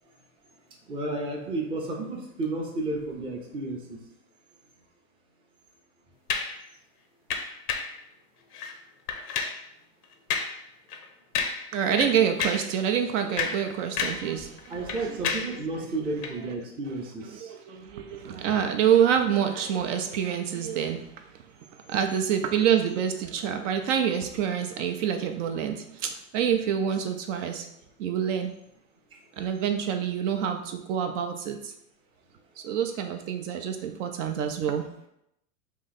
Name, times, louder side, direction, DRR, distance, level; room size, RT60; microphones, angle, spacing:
voice 1, 0.7-4.0 14.7-17.5 29.1-29.2, right 2 dB, 10° right, 0 dB, 0.5 m, -32 dB
sound 1, 6.3-6.6 7.3-8.0 8.5-8.8 9.1-9.6 10.3-10.6 10.9-11.0 11.4-11.7 12.0-12.7 13.2-14.3 14.6-15.6 16.2-16.4, left 6 dB, 85° left, 0.7 m, -30 dB
voice 2, 11.7-15.6 17.4-21.2 21.9-27.7 28.0-28.5 29.4-31.7 32.6-34.9, right 8 dB, 55° right, 5 dB, 0.5 m, -27 dB
3.0 x 2.6 x 4.0 m, 0.78 s
hypercardioid pair, 110°, 45 cm